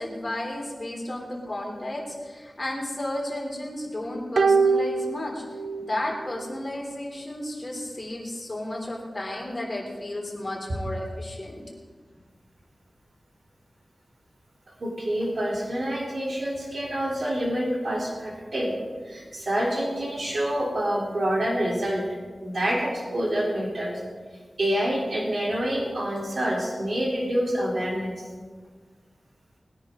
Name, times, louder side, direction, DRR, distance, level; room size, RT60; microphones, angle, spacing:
voice 1, 0.0-5.4 5.8-11.6, left 1 dB, 30° left, -2 dB, 3.6 m, -33 dB
sound 1, 4.4-6.0 6.3-6.4, right 4 dB, 75° right, 0.5 m, -23 dB
voice 2, 14.8-18.7 19.0-22.1 22.4-24.0 24.6-28.2, equal, 55° right, -4 dB, 3.7 m, -27 dB
20.0 x 10.0 x 3.9 m, 1.5 s
wide cardioid pair, 100°, 0 cm